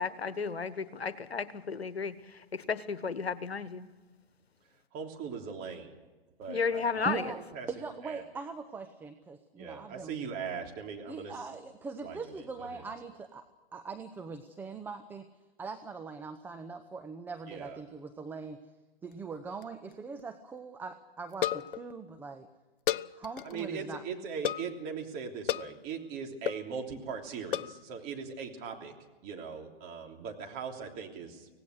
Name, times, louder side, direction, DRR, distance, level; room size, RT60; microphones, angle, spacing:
voice 1, 0.0-3.9 6.5-7.3, left 5 dB, 80° left, 14 dB, 1.3 m, -33 dB
voice 2, 4.9-5.9 6.4-7.7 8.0-8.2 9.6-11.3 12.0-12.7 17.5-17.8 23.4-28.9 29.2-31.5, right 6 dB, 30° right, 2 dB, 3.2 m, -40 dB
voice 3, 7.1-7.4 7.7-10.1 11.1-13.4 13.7-15.3 15.6-18.6 19.0-22.5 23.2-24.0, right 4 dB, 5° right, 8 dB, 0.6 m, -41 dB
sound 1, 19.1-19.6 19.9-20.0 20.2-20.3 21.3-21.9 22.9-23.6 24.4-24.8 25.5-25.8 26.5-26.7 27.5-27.8, left 11 dB, 60° left, 0.6 m, -32 dB
25.5 x 17.5 x 6.5 m, 1.2 s
figure-of-eight pair, 125°, 30 cm